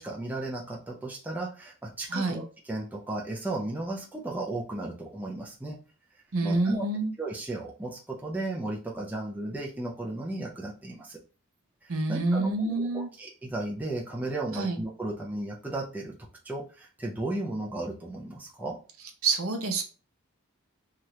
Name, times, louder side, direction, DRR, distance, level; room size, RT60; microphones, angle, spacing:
voice 1, 0.0-5.8 6.4-6.8 7.2-11.2 11.8-16.2 16.4-18.8, right 2 dB, 5° right, -2 dB, 0.4 m, -35 dB
voice 2, 2.1-2.4 6.3-7.1 11.9-13.1 14.5-14.8 19.2-19.8, right 3 dB, 75° right, 5 dB, 0.7 m, -27 dB
2.8 x 2.4 x 3.1 m, 0.35 s
head